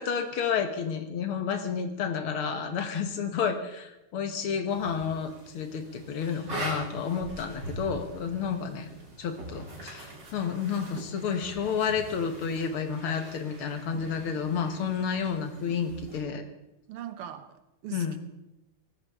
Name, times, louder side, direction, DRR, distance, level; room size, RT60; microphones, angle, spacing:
voice 1, 0.0-8.9 9.2-16.4 17.9-18.2, left 6 dB, 75° left, 7 dB, 2.1 m, -30 dB
sound 1, 4.7-16.2, right 2 dB, 55° right, 3.9 m, -43 dB
voice 2, 8.5-8.8 16.9-18.2, right 10 dB, 80° right, 10 dB, 1.9 m, -41 dB
18.0 x 14.5 x 3.6 m, 0.95 s
omnidirectional pair, 2.4 m